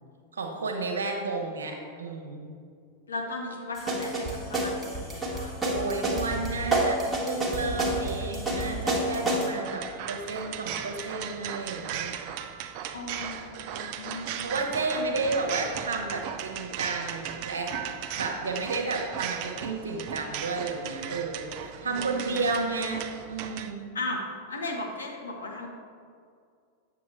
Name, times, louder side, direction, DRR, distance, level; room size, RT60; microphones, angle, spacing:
voice 1, 0.3-2.5 5.4-12.2 14.4-17.7 18.2-23.0 23.3-23.9, right 3 dB, 70° right, 2 dB, 1.1 m, -32 dB
voice 2, 3.1-5.6 12.9-14.6 21.8-22.4 23.9-24.2 24.5-25.7, left 2 dB, 70° left, 0 dB, 1.2 m, -36 dB
sound 1, 3.8-9.5, right 2 dB, 10° right, 1.4 m, -28 dB
sound 2, 9.6-23.7, right 9 dB, 45° right, 0.4 m, -37 dB
8.4 x 7.4 x 3.3 m, 2.2 s
figure-of-eight pair, 90°, 0 cm